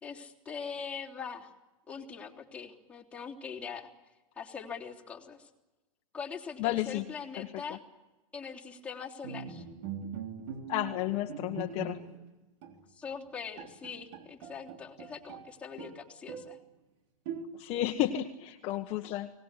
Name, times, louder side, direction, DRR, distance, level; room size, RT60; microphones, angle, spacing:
voice 1, 0.0-1.5 1.9-3.9 4.4-5.5 6.1-7.8 8.3-9.6 12.9-16.6, left 6 dB, 10° left, -4 dB, 3.4 m, -42 dB
voice 2, 6.6-7.0 7.4-7.5 10.7-12.0 17.6-19.3, left 14 dB, 35° left, 5 dB, 1.3 m, -32 dB
Bowed string instrument, 9.2-12.3 12.6-12.8 13.3-13.4 13.6-15.5 15.8-16.6 17.2-17.8, right 6 dB, 55° right, 3.6 m, -42 dB
24.5 x 19.5 x 9.9 m, 1.1 s
hypercardioid pair, 140°, 17 cm